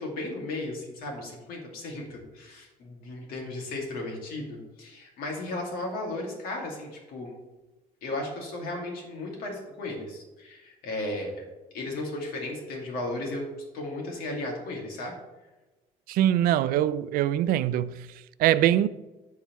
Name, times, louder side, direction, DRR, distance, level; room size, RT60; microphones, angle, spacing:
voice 1, 0.0-7.3 8.0-11.4 11.7-13.4 13.7-15.1, left 2 dB, 80° left, 2.3 m, -35 dB
voice 2, 16.1-18.1 18.4-18.9, right 12 dB, 75° right, 0.4 m, -23 dB
13.5 x 4.8 x 3.1 m
cardioid pair, 135°, 15 cm